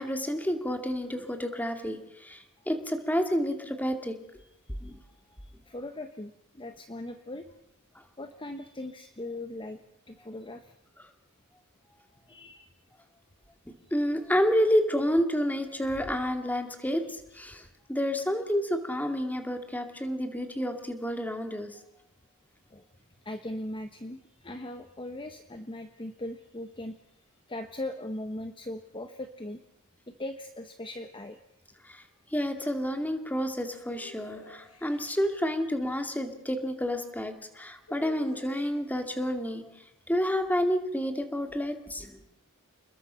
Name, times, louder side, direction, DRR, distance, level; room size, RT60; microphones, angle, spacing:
voice 1, 0.0-4.2 4.8-5.0 13.9-21.8 31.8-32.0 32.3-39.7 40.1-42.2, equal, 10° left, 6 dB, 2.4 m, -29 dB
voice 2, 4.4-5.0 5.4-7.5 8.2-9.8 10.1-10.7 12.3-12.7 22.7-22.8 23.2-27.0 27.5-29.6 30.1-31.4, left 1 dB, 25° left, 7 dB, 1.2 m, -39 dB
sound 1, 33.9-35.3 37.9-39.0, left 4 dB, 70° left, 5.0 m, -49 dB
29.0 x 21.0 x 5.7 m, 0.79 s
head